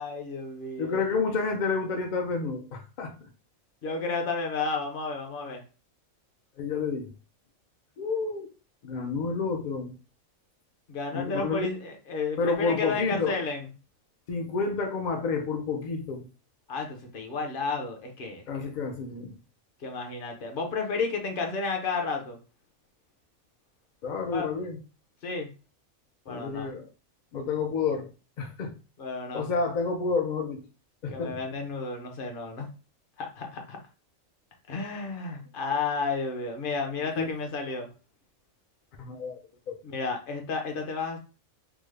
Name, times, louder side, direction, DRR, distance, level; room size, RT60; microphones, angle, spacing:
voice 1, 0.0-1.0 3.8-5.6 10.9-13.6 16.7-18.7 19.8-22.4 24.3-24.5 25.2-25.5 26.3-26.7 29.0-29.5 31.1-32.7 33.2-33.8 34.7-37.9 39.8-41.2, left 4 dB, 50° left, 0.7 m, -32 dB
voice 2, 0.8-3.1 6.6-7.1 8.0-8.5 8.8-9.9 11.1-11.7 12.4-13.4 14.3-16.3 18.5-19.4 24.0-24.8 26.3-26.9 27.3-28.1 28.4-28.7 29.3-30.6 31.0-31.4 37.2-37.3 39.0-39.4 39.7-39.8, left 4 dB, 80° left, 0.4 m, -29 dB
3.5 x 2.1 x 3.2 m
omnidirectional pair, 1.4 m